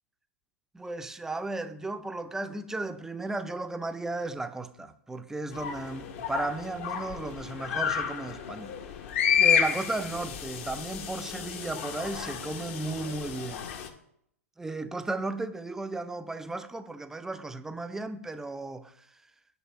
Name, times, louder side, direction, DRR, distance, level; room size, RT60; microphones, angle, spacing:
voice 1, 0.7-8.7 9.4-13.7 14.6-19.1, right 2 dB, 5° right, 0.4 m, -35 dB
sound 1, 5.5-13.9, left 8 dB, 55° left, 0.8 m, -30 dB
8.0 x 3.1 x 6.1 m
hypercardioid pair, 115°, 8 cm